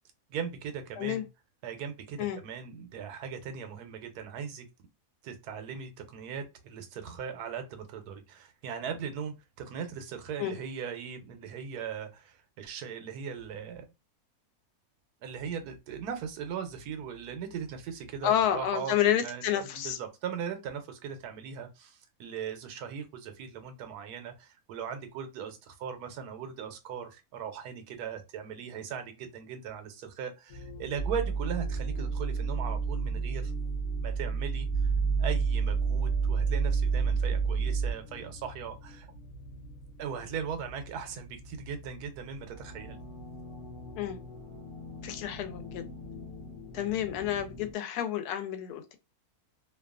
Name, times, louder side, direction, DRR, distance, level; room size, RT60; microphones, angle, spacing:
voice 1, 0.3-1.3 1.6-4.6 5.2-13.9 15.2-18.9 19.2-33.5 34.0-34.7 35.2-39.1 40.0-43.0, right 7 dB, 85° right, 1.2 m, -39 dB
voice 2, 18.2-20.0 44.0-44.2 45.0-45.8 46.7-49.0, left 10 dB, 85° left, 1.1 m, -29 dB
sound 1, 30.5-47.7, left 2 dB, 65° left, 0.7 m, -46 dB
sound 2, 31.0-37.9, right 5 dB, 25° left, 0.9 m, -28 dB
2.7 x 2.3 x 2.3 m
omnidirectional pair, 1.6 m